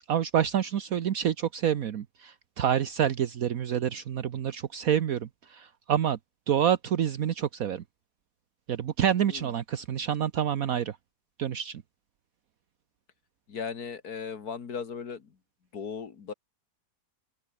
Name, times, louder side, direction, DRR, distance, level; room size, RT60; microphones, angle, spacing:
voice 1, 0.1-6.2 6.5-7.8 8.7-10.9 11.4-11.8, right 9 dB, 65° right, 1.3 m, -27 dB
voice 2, 13.5-15.2 15.7-16.3, left 6 dB, 75° left, 2.3 m, -37 dB
open air
omnidirectional pair, 1.7 m